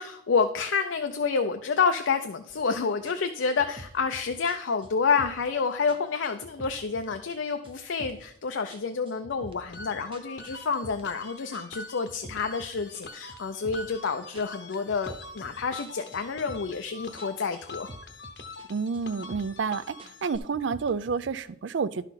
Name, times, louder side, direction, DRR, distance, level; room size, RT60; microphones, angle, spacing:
voice 1, 0.0-17.9, left 5 dB, 80° left, 6 dB, 0.5 m, -29 dB
sound 1, 2.5-2.7 3.1-5.6 5.9-7.4 7.6-8.4 8.7-11.2 11.5-14.0 14.3-16.9 17.2-18.7 18.9-19.7 20.0-21.4, right 1 dB, 30° right, 0.7 m, -48 dB
sound 2, 9.7-20.4, left 3 dB, 60° left, 0.9 m, -44 dB
voice 2, 18.7-20.0 20.2-22.1, right 5 dB, 75° right, 15 dB, 0.4 m, -29 dB
11.5 x 4.1 x 5.7 m, 0.71 s
head